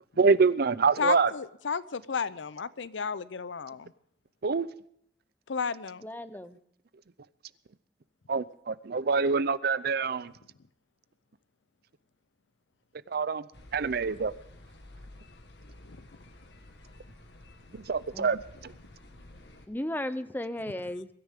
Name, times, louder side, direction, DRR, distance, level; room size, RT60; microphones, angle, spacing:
voice 1, 0.2-1.3 4.4-4.7 8.3-10.3 13.1-13.4 13.7-14.3 17.7-18.7, right 4 dB, 60° right, 0.6 m, -26 dB
voice 2, 1.0-3.9 5.5-6.0 15.9-16.0, left 5 dB, 90° left, 0.6 m, -33 dB
voice 3, 6.0-6.6 18.1-18.3 19.7-21.1, left 1 dB, 10° left, 0.7 m, -35 dB
sound 1, 13.5-19.7, left 1 dB, 65° left, 1.6 m, -51 dB
23.0 x 13.5 x 3.6 m
head